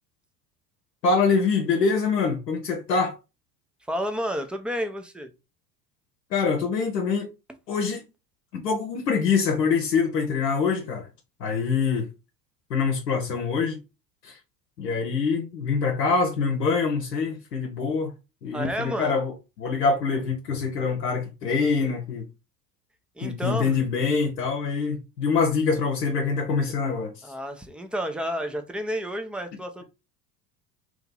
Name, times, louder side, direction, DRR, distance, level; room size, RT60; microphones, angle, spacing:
voice 1, 1.0-3.1 6.3-7.3 7.7-8.0 8.5-11.1 11.4-12.1 12.7-13.8 14.2-14.4 14.8-18.1 18.4-19.3 19.6-22.2 23.2-27.3, left 5 dB, 85° left, 0.8 m, -25 dB
voice 2, 3.9-5.3 18.5-19.1 23.2-23.7 27.2-29.8, equal, ahead, 0.5 m, -30 dB
3.0 x 2.7 x 3.7 m
hypercardioid pair, 70°, 48 cm